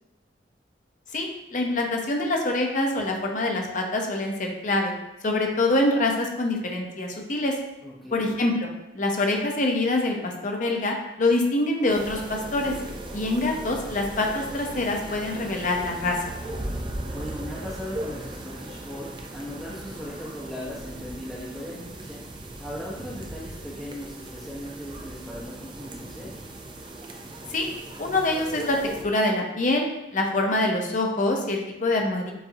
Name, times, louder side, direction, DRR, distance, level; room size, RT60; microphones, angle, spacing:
voice 1, 1.1-4.9 5.2-7.5 8.1-8.7 8.9-12.8 13.1-16.2 27.5-27.7 28.0-32.3, left 2 dB, 45° left, 1 dB, 0.7 m, -25 dB
voice 2, 7.8-8.3 17.0-22.2 22.6-26.3, equal, ahead, -8 dB, 0.8 m, -38 dB
sound 1, 11.9-29.0, right 1 dB, 30° right, 0.4 m, -38 dB
7.0 x 2.6 x 2.7 m, 0.92 s
head